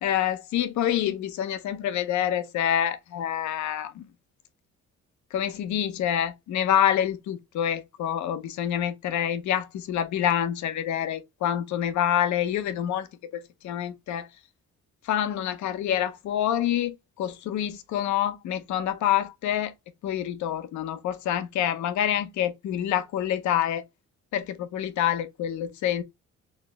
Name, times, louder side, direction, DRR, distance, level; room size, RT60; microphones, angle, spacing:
voice 1, 0.0-4.1 5.3-13.1 13.3-14.3 15.0-19.7 20.0-23.8 24.3-26.0, left 10 dB, 70° left, 0.6 m, -27 dB
4.3 x 2.0 x 3.3 m
cardioid pair, 90°, 30 cm